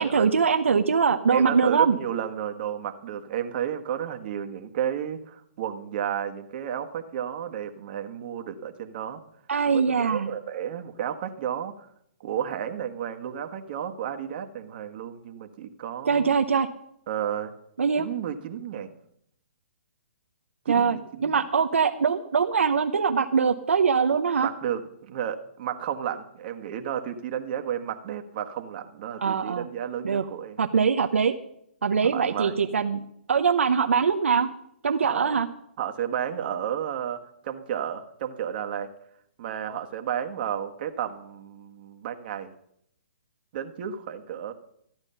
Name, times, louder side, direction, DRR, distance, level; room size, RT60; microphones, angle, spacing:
voice 1, 0.0-2.0 9.5-10.3 16.0-16.7 17.8-18.1 20.7-24.5 29.2-29.7 30.0-30.3 30.6-31.4 31.8-33.0 33.3-34.5 34.8-35.5, right 6 dB, 80° right, 6 dB, 0.9 m, -22 dB
voice 2, 1.3-9.2 9.6-11.9 12.2-16.3 17.1-17.5 18.0-18.9 20.7-21.4 24.4-24.8 25.1-30.6 32.1-32.6 35.0-35.4 35.8-38.9 39.4-42.5 43.5-44.5, right 9 dB, 50° right, 5 dB, 1.4 m, -32 dB
14.0 x 9.6 x 5.6 m, 0.73 s
hypercardioid pair, 135°, 7 cm